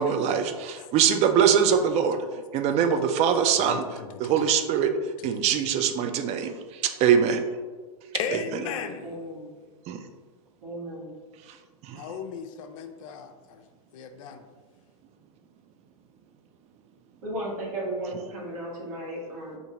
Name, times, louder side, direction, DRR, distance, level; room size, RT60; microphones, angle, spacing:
voice 1, 0.0-2.2 2.5-3.8 4.2-4.9 5.2-7.4 9.9-10.0 11.8-12.0, right 7 dB, 35° right, 6 dB, 0.4 m, -23 dB
voice 2, 3.7-4.3 5.5-5.6 8.2-9.2 11.9-13.6 13.9-14.5, left 6 dB, 60° left, 7 dB, 0.4 m, -36 dB
voice 3, 8.6-9.5 10.6-11.1 17.2-19.6, right 1 dB, 65° right, -5 dB, 1.2 m, -35 dB
3.6 x 2.5 x 2.8 m, 1.4 s
hypercardioid pair, 100°, 19 cm